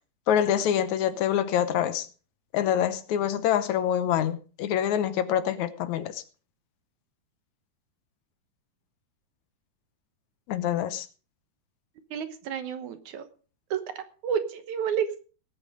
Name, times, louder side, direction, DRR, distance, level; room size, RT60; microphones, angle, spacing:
voice 1, 0.3-2.1 2.5-6.2 10.5-11.1, left 10 dB, 75° left, 12 dB, 2.1 m, -26 dB
voice 2, 12.1-13.3 13.7-15.2, right 8 dB, 75° right, 10 dB, 2.5 m, -31 dB
18.0 x 8.3 x 4.9 m, 0.38 s
omnidirectional pair, 3.6 m